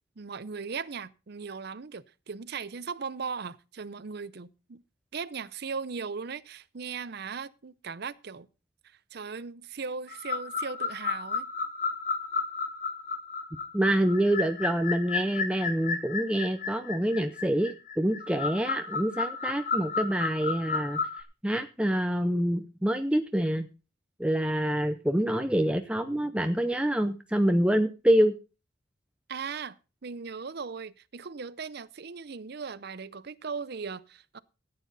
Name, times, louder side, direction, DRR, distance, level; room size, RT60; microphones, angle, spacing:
voice 1, 0.2-4.8 5.1-8.5 9.1-11.5 29.3-29.8 30.0-34.4, right 5 dB, 55° right, 0.6 m, -38 dB
sound 1, 10.1-21.2, left 5 dB, 40° left, 1.4 m, -33 dB
voice 2, 13.7-21.0 21.4-23.7 24.2-28.3, right 1 dB, 5° right, 0.6 m, -26 dB
14.0 x 9.4 x 4.0 m
head